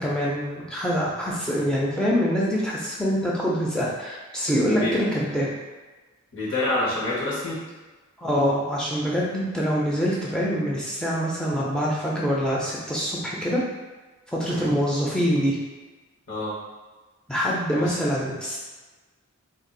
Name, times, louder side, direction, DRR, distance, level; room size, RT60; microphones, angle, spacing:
voice 1, 0.0-5.5 8.2-13.6 14.3-15.6 17.3-18.6, equal, 5° left, -5 dB, 0.5 m, -25 dB
voice 2, 6.3-7.6 14.5-14.7 16.3-16.5 17.8-17.9, left 2 dB, 60° left, -7 dB, 1.1 m, -27 dB
2.6 x 2.4 x 3.9 m, 1.3 s
head